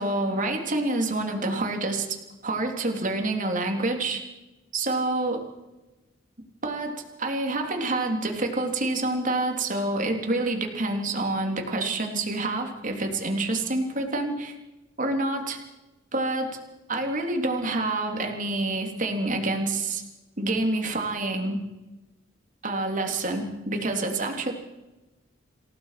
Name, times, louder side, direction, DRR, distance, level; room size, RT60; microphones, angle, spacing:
voice 1, 0.0-4.2 4.7-5.4 6.6-14.5 15.0-15.6 16.1-16.6 16.9-20.0 20.4-21.6 22.6-24.5, right 2 dB, 45° right, 3 dB, 3.5 m, -27 dB
28.0 x 17.0 x 6.0 m, 1.1 s
head